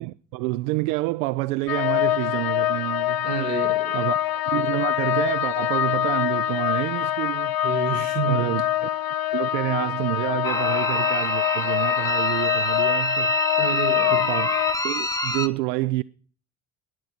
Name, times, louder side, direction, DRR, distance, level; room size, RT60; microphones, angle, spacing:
voice 1, 0.0-3.3 3.9-7.6 8.3-8.9 9.3-13.6 14.1-14.5 14.8-16.0, right 20 dB, 65° right, 0.6 m, -28 dB
sound 1, 1.7-14.7, left 13 dB, 45° left, 1.0 m, -25 dB
voice 2, 3.2-4.0 7.6-8.6 13.6-14.3, right 7 dB, 85° right, 1.7 m, -29 dB
sound 2, 10.4-15.5, equal, 5° left, 0.8 m, -26 dB
12.0 x 10.5 x 7.5 m
figure-of-eight pair, 50°, 48 cm